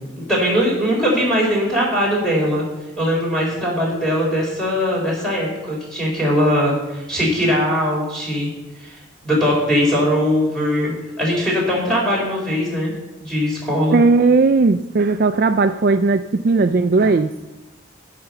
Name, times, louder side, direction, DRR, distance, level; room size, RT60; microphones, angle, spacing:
voice 1, 0.1-2.6 3.0-8.5 8.8-12.9 13.2-14.0, equal, ahead, -4 dB, 4.3 m, -20 dB
voice 2, 13.9-17.3, right 3 dB, 45° right, 8 dB, 0.4 m, -16 dB
14.5 x 6.0 x 6.7 m, 1.0 s
head